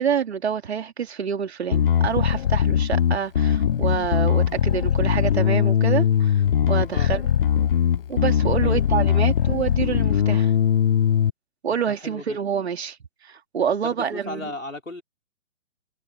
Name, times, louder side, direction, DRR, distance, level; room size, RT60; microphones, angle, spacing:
voice 1, 0.0-6.3 6.7-7.2 8.1-10.5 11.6-13.0 13.2-14.5, right 7 dB, 55° right, 3.1 m, -27 dB
Bass guitar, 1.7-11.3, left 9 dB, 45° left, 0.9 m, -20 dB
voice 2, 11.9-12.4 13.8-15.0, left 2 dB, 85° left, 5.8 m, -35 dB
figure-of-eight pair, 135°, 38 cm